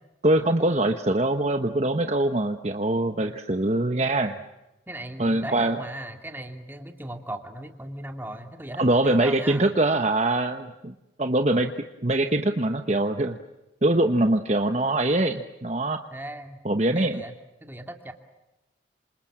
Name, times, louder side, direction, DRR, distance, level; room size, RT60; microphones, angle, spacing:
voice 1, 0.2-4.4 5.2-5.8 8.8-11.7 12.0-13.4 13.8-16.0 16.6-17.2, right 2 dB, 35° right, 7 dB, 1.1 m, -23 dB
voice 2, 4.9-9.7 16.1-16.6 16.9-18.1, right 1 dB, 10° right, 5 dB, 2.6 m, -38 dB
27.5 x 27.0 x 7.5 m, 0.99 s
head